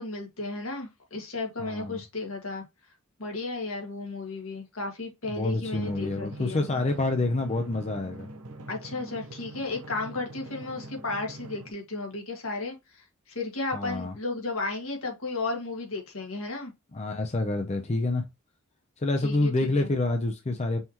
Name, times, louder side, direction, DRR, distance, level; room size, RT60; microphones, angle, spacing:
voice 1, 0.0-2.6 3.2-6.7 8.7-12.8 13.3-16.7 19.2-19.9, left 3 dB, 75° left, 1.8 m, -34 dB
voice 2, 1.6-2.0 5.3-8.3 13.7-14.1 16.9-18.2 19.0-20.8, left 2 dB, 30° left, 0.6 m, -27 dB
Drum, 5.6-11.7, right 1 dB, 90° right, 0.8 m, -43 dB
5.6 x 3.0 x 2.9 m
head